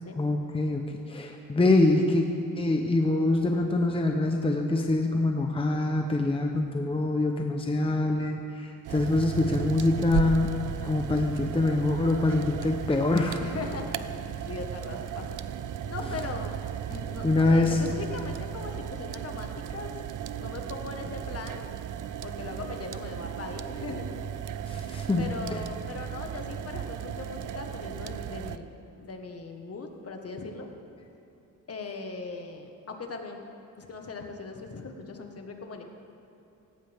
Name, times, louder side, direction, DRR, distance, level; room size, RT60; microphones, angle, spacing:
voice 1, 0.1-2.3 2.6-10.6 10.8-13.4 17.2-17.8 24.7-25.3, left 2 dB, 15° left, 3 dB, 0.9 m, -25 dB
sound 1, 8.9-28.6, right 9 dB, 65° right, 0.6 m, -35 dB
voice 2, 13.4-15.4 15.8-16.5 16.9-20.0 20.3-21.6 22.2-24.1 24.6-24.7 25.2-28.7 28.9-30.7 31.7-33.4 33.8-35.8, left 4 dB, 45° left, 3 dB, 1.6 m, -39 dB
18.0 x 17.0 x 3.6 m, 2.9 s
cardioid pair, 115°, 34 cm